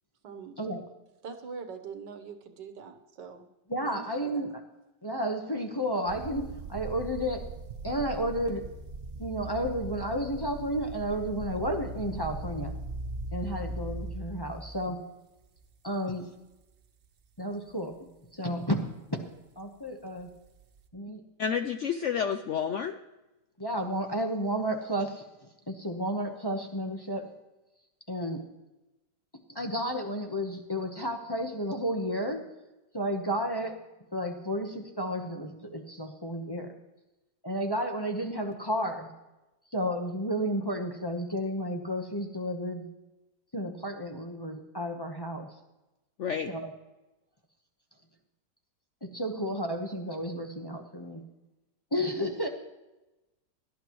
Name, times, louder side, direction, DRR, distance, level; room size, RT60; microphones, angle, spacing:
voice 1, 0.2-0.6 1.2-3.5 3.9-4.5, right 5 dB, 90° right, 7 dB, 1.8 m, -43 dB
voice 2, 3.7-4.5 5.0-7.4 7.8-8.6 9.2-12.7 13.3-15.0 15.8-16.3 17.4-18.0 18.3-18.8 19.1-19.3 19.6-20.3 20.9-21.2 23.6-25.3 25.7-27.3 28.1-28.4 29.5-32.5 32.9-33.8 34.1-36.7 37.4-39.1 39.7-42.9 43.5-45.5 46.5-46.7 49.0-51.2 51.9-52.5, equal, 15° left, 2 dB, 0.9 m, -32 dB
sound 1, 6.1-14.9 15.6-16.0 16.5-16.6 20.2-20.9, right 3 dB, 45° right, 0.8 m, -39 dB
voice 3, 21.4-23.0 46.2-46.5, left 7 dB, 70° left, 8 dB, 0.7 m, -30 dB
17.5 x 11.0 x 3.1 m, 1.0 s
omnidirectional pair, 1.8 m